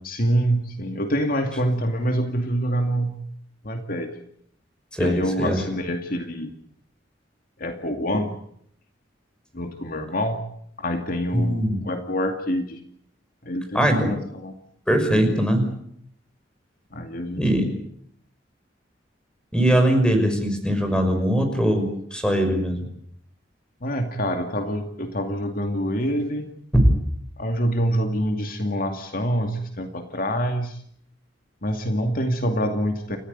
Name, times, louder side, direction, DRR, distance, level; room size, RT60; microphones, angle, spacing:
voice 1, 0.0-3.2 3.6-4.1 5.0-6.5 7.6-8.4 9.5-10.4 10.8-12.8 13.4-14.5 16.9-17.7 23.8-26.5 27.4-30.8 31.6-33.2, equal, 50° left, 5 dB, 2.4 m, -26 dB
voice 2, 4.9-5.6 11.3-11.8 13.7-14.1 14.9-15.7 17.4-17.7 19.5-22.8 26.7-26.9, equal, 5° left, 6 dB, 6.0 m, -21 dB
30.0 x 15.5 x 9.5 m, 0.69 s
head